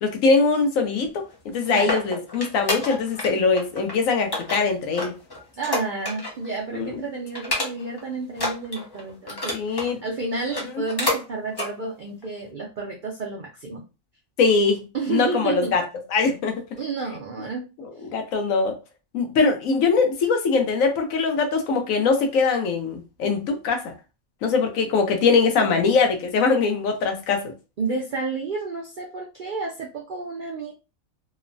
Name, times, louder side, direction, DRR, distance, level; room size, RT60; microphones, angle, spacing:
voice 1, 0.0-5.1 6.7-7.0 9.5-10.0 10.7-10.8 14.4-15.8 16.1-16.6 17.8-18.8 19.1-23.9 24.4-27.5, left 4 dB, 75° left, 1.1 m, -22 dB
sound 1, 1.3-3.3 3.6-3.9 4.3-6.5 6.8-7.0 7.3-8.0 8.3-9.9 10.4-11.2 11.5-11.7 12.2-12.3, left 2 dB, 30° left, 0.4 m, -29 dB
voice 2, 1.7-2.0 5.6-13.8 14.9-15.7 16.8-17.7 27.8-30.7, right 4 dB, 70° right, 0.4 m, -30 dB
3.0 x 2.0 x 2.5 m
omnidirectional pair, 1.4 m